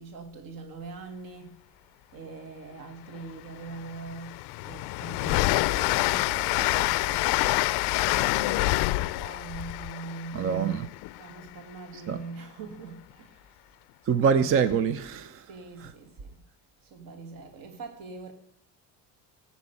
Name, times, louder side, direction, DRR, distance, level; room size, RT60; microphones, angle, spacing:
voice 1, 0.0-1.6 2.1-7.3 7.9-10.5 11.2-13.5 15.5-16.4 16.8-18.3, right 4 dB, 50° right, 5 dB, 2.3 m, -43 dB
Train, 3.1-3.2 3.7-11.4, left 20 dB, 65° left, 0.5 m, -27 dB
voice 2, 10.3-10.9 12.1-12.2 14.1-15.4, right 6 dB, 30° right, 13 dB, 0.6 m, -24 dB
16.0 x 7.4 x 8.3 m, 0.69 s
cardioid pair, 165°, 43 cm